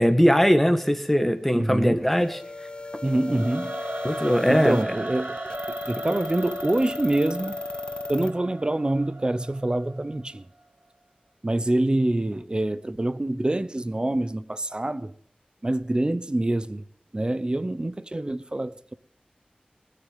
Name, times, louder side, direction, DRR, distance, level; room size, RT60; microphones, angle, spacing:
voice 1, 0.0-2.4 4.0-4.8, equal, 5° left, 1.6 m, -20 dB
voice 2, 1.5-2.1 3.0-3.8 4.2-5.4 5.7-7.7 8.1-10.4 11.4-15.1 15.6-16.8 17.1-18.9, right 1 dB, 30° right, 0.8 m, -26 dB
sound 1, 2.1-8.3, left 2 dB, 35° left, 0.9 m, -35 dB
Singing / Musical instrument, 3.2-10.3, right 2 dB, 60° right, 1.6 m, -37 dB
19.5 x 6.7 x 9.2 m
wide cardioid pair, 60°, 3 cm